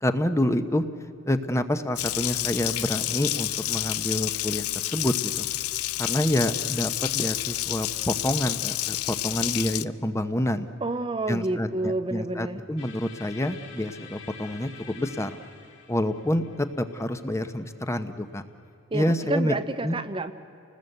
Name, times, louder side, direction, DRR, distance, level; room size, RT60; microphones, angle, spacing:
voice 1, 0.0-0.8 1.3-5.5 6.0-10.7 11.3-15.4 15.9-18.4 18.9-19.5 19.8-20.0, left 1 dB, 15° left, 10 dB, 1.0 m, -27 dB
Water tap faucet, 2.0-9.8, left 15 dB, 75° left, 0.6 m, -29 dB
voice 2, 10.8-12.6 18.9-20.3, right 2 dB, 20° right, 9 dB, 0.6 m, -29 dB
sound 1, 12.8-18.7, left 6 dB, 50° left, 4.5 m, -48 dB
30.0 x 20.0 x 8.0 m, 2.7 s
head